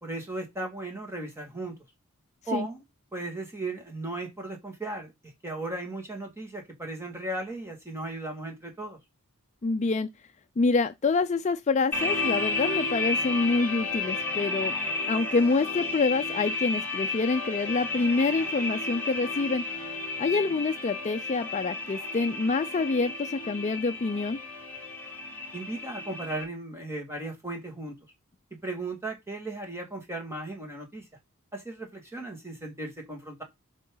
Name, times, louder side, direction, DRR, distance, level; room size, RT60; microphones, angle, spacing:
voice 1, 0.0-1.8 2.5-2.8 3.1-5.1 5.4-9.0 25.5-27.9 28.5-31.0 31.5-33.4, right 2 dB, 10° right, 2.1 m, -36 dB
voice 2, 9.6-10.1 10.6-14.7 15.1-19.6 20.2-24.4, left 3 dB, 35° left, 0.4 m, -26 dB
sound 1, 11.9-26.4, left 3 dB, 10° left, 3.7 m, -32 dB
8.1 x 5.5 x 3.8 m
head